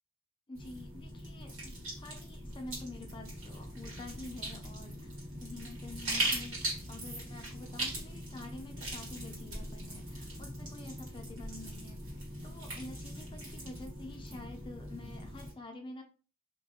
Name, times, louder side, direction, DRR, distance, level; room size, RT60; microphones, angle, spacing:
voice 1, 0.5-1.7 2.0-5.1 5.4-16.0, left 2 dB, 25° left, 3 dB, 0.5 m, -48 dB
sound 1, 0.5-15.5, right 1 dB, 65° right, 1.2 m, -40 dB
2.3 x 2.1 x 2.8 m, 0.36 s
head